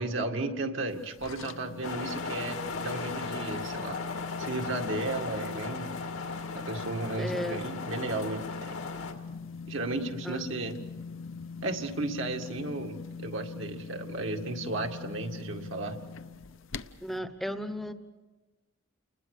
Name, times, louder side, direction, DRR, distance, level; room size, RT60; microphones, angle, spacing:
voice 1, 0.0-4.0 4.4-5.9 6.6-8.8 9.7-10.8 11.6-16.0, right 2 dB, 60° right, 4 dB, 2.1 m, -34 dB
sound 1, 0.9-17.2, left 5 dB, 65° left, 0.8 m, -42 dB
sound 2, 1.8-9.1, left 4 dB, 90° left, 2.4 m, -37 dB
voice 2, 7.2-7.7 10.2-10.4 17.0-17.9, equal, ahead, 9 dB, 1.0 m, -34 dB
29.5 x 20.5 x 6.7 m, 1.2 s
head